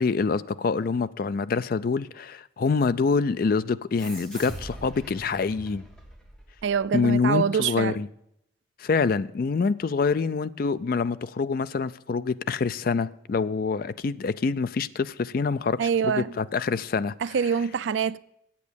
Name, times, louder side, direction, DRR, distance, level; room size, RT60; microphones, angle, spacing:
voice 1, 0.0-5.9 6.9-8.1 8.8-15.8 16.0-17.1, left 4 dB, 50° left, 0.4 m, -26 dB
sound 1, 4.0-7.0, right 1 dB, 5° left, 1.7 m, -42 dB
voice 2, 6.6-8.0 15.8-16.4 17.2-18.2, right 7 dB, 70° right, 0.4 m, -25 dB
8.4 x 8.4 x 6.8 m
head